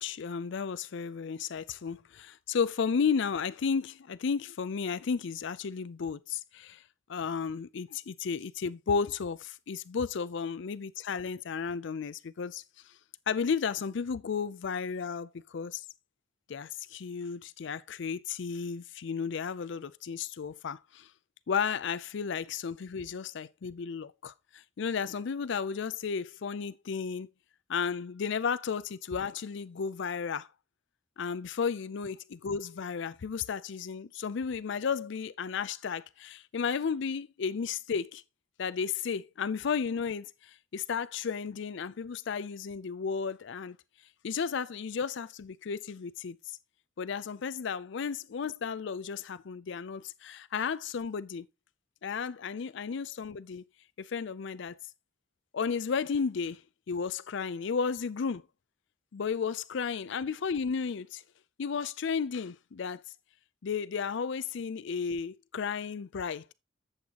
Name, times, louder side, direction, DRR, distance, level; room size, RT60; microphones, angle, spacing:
voice 1, 0.0-6.8 7.1-12.6 13.3-15.8 16.5-21.1 21.5-27.3 27.7-30.5 31.2-38.2 38.6-43.8 44.2-46.4 47.0-51.5 52.0-53.6 54.0-54.8 55.5-56.6 56.9-58.4 59.1-61.2 61.6-63.0 63.6-66.5, left 6 dB, 60° left, 0.4 m, -33 dB
11.0 x 8.0 x 2.9 m
head